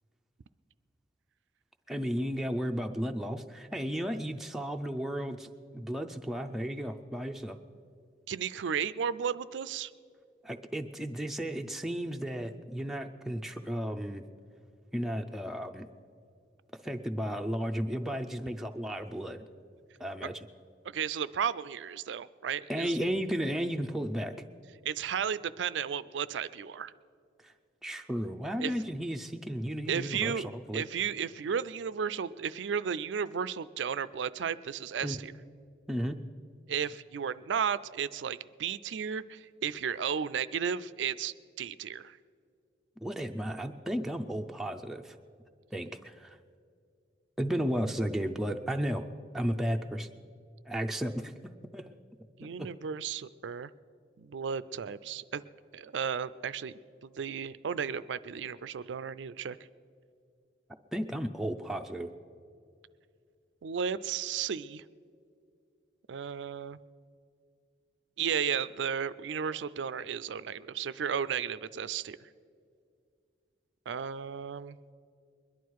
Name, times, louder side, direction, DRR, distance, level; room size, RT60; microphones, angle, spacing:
voice 1, 1.9-7.6 10.4-14.2 14.9-15.9 16.8-19.4 20.0-20.5 22.7-24.4 27.4-27.5 27.8-30.8 35.0-35.2 35.9-36.2 43.0-45.2 45.7-46.4 47.4-49.1 49.3-50.1 50.7-51.9 52.4-52.7 60.9-62.1, equal, ahead, 3 dB, 0.4 m, -34 dB
voice 2, 8.3-9.9 20.2-20.3 20.9-23.0 24.8-26.9 28.6-28.7 29.9-30.5 30.7-35.3 36.7-42.2 52.4-53.7 54.2-55.4 55.7-59.6 63.6-64.8 66.1-66.8 68.2-72.3 73.9-74.8, right 7 dB, 80° right, 16 dB, 0.4 m, -34 dB
21.5 x 11.0 x 4.7 m, 2.3 s
head